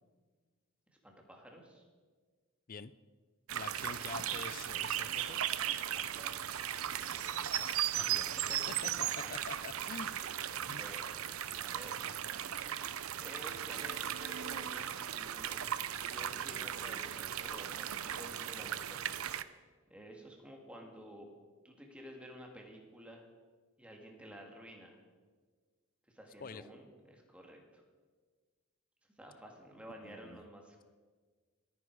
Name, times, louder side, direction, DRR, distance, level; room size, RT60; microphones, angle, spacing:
voice 1, 0.9-1.9 5.7-6.4 8.5-8.6 8.8-9.3 10.6-11.1 11.5-12.0 13.2-15.6 16.0-19.0 19.9-21.3 21.6-23.3 23.8-25.0 26.1-27.8 29.2-30.8, equal, 5° right, 1 dB, 2.3 m, -52 dB
voice 2, 3.5-5.4 7.3-8.6 8.8-8.9 9.3-10.1 10.4-10.8 26.4-26.6 30.0-30.4, left 5 dB, 40° left, 16 dB, 0.5 m, -47 dB
sound 1, 3.5-19.4, right 10 dB, 85° right, 0.6 m, -37 dB
25.5 x 9.7 x 4.8 m, 1.4 s
head